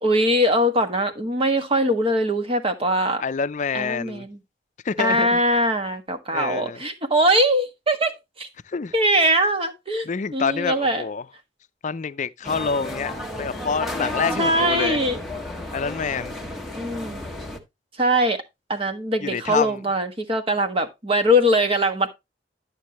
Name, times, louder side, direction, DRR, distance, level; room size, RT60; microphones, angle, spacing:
voice 1, 0.0-3.2 3.7-4.4 5.0-8.1 8.4-8.5 8.9-10.1 10.3-11.1 14.4-15.2 16.7-17.2 18.0-18.4 18.7-22.1, equal, 35° right, 1.4 m, -21 dB
voice 2, 3.2-4.3 4.9-5.4 6.3-6.8 8.7-8.9 10.1-11.2 11.8-13.1 13.4-15.0 15.7-16.3 19.2-19.8, left 5 dB, 45° left, 0.5 m, -27 dB
sound 1, 12.4-17.6, left 1 dB, ahead, 1.4 m, -32 dB
11.5 x 6.4 x 3.0 m
head